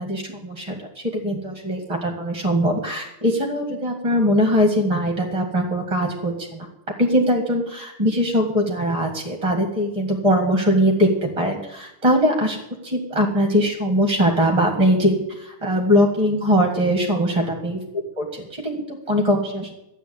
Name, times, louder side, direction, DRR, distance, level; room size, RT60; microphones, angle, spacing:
voice 1, 0.0-6.7 7.0-12.6 12.8-17.8 18.2-18.3 18.5-19.7, equal, 15° right, 3 dB, 1.4 m, -21 dB
13.0 x 9.0 x 8.1 m, 0.87 s
omnidirectional pair, 3.6 m